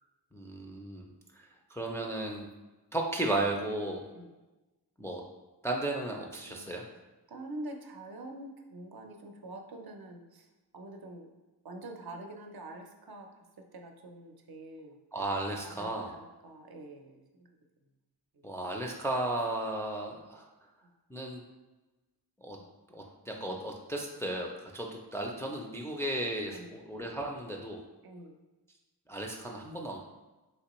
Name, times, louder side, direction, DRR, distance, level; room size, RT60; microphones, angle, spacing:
voice 1, 0.3-1.1 1.4-2.5 2.9-4.0 5.0-5.2 5.6-6.8 15.1-16.1 18.4-20.5 21.1-21.4 22.4-22.6 22.9-27.8 29.1-30.0, right 1 dB, 5° left, -1 dB, 0.3 m, -35 dB
voice 2, 6.4-6.8 7.3-10.5 10.7-11.3 11.6-15.0 15.6-17.5 18.3-18.5 26.5-26.9 28.0-28.4, right 1 dB, 65° right, 3 dB, 0.5 m, -46 dB
3.3 x 3.0 x 2.9 m, 1.1 s
wide cardioid pair, 90°, 41 cm